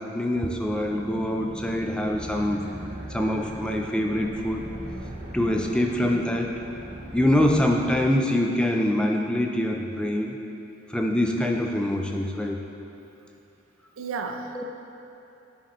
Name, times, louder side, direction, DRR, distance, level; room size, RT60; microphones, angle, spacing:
voice 1, 0.0-2.7 3.1-4.6 5.3-6.6 7.1-10.4 10.9-12.6 14.5-14.6, left 1 dB, 5° left, 1 dB, 0.3 m, -24 dB
sound 1, 0.6-8.0, right 1 dB, 35° right, 0.7 m, -39 dB
voice 2, 5.4-5.7 14.0-14.6, right 4 dB, 85° right, 5 dB, 0.5 m, -34 dB
9.9 x 5.1 x 3.0 m, 2.9 s
head